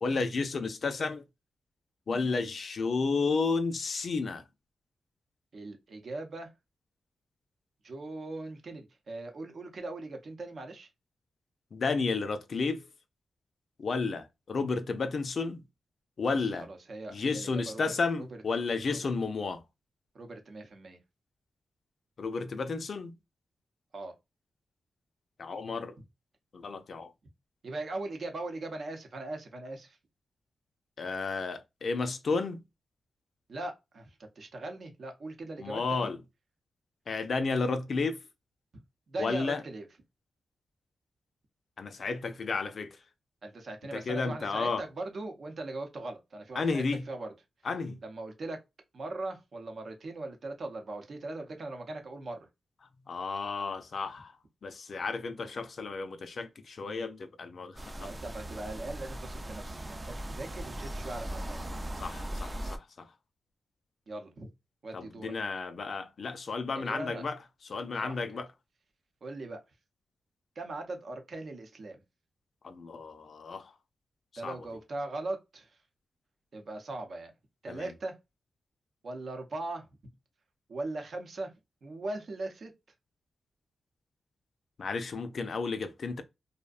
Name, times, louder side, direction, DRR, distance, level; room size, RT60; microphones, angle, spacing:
voice 1, 0.0-1.2 2.1-4.4 11.7-12.9 13.8-15.6 16.2-16.7 17.1-19.6 22.2-23.1 25.4-26.0 26.5-27.1 31.0-32.6 35.6-36.2 37.1-38.2 39.2-39.6 41.8-43.0 43.9-44.8 46.6-47.1 47.6-48.0 53.1-54.4 54.6-58.1 61.9-63.1 64.9-68.5 72.6-73.7 74.4-74.6 77.7-77.9 84.8-86.2, left 4 dB, 65° left, 0.4 m, -32 dB
voice 2, 5.5-6.5 7.8-10.9 16.6-18.3 20.1-21.0 23.9-24.1 27.6-30.0 33.5-36.1 39.1-39.9 43.4-47.3 48.0-48.6 48.9-52.5 58.0-61.6 64.1-64.5 64.8-65.3 66.7-67.2 68.0-68.3 69.2-69.6 70.6-72.0 74.4-75.8 76.5-77.3 77.6-78.2 79.0-79.9 80.7-81.5 81.8-82.7, right 2 dB, 65° right, 0.7 m, -40 dB
sound 1, 57.8-62.8, right 1 dB, 25° right, 0.4 m, -39 dB
2.5 x 2.1 x 2.4 m
cardioid pair, 55°, 0 cm